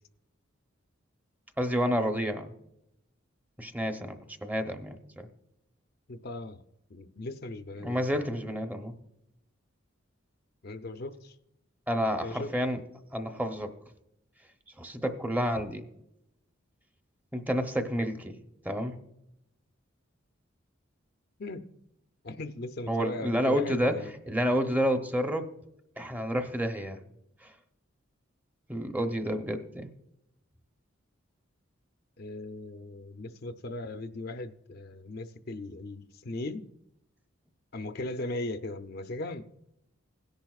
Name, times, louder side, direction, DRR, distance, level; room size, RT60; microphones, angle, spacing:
voice 1, 1.6-2.5 3.6-4.2 4.4-5.3 7.8-8.9 11.9-12.8 13.1-13.7 14.8-15.8 17.3-18.3 18.6-18.9 22.9-24.0 24.3-25.5 26.0-27.0 27.4-27.5 28.7-29.9, equal, 10° right, 6 dB, 0.8 m, -29 dB
voice 2, 6.1-6.6 6.9-8.1 10.6-11.3 12.2-12.5 21.4-21.7 22.2-24.1 32.2-36.6 37.7-39.4, left 2 dB, 50° left, 8 dB, 0.6 m, -38 dB
17.5 x 10.5 x 2.4 m, 0.81 s
head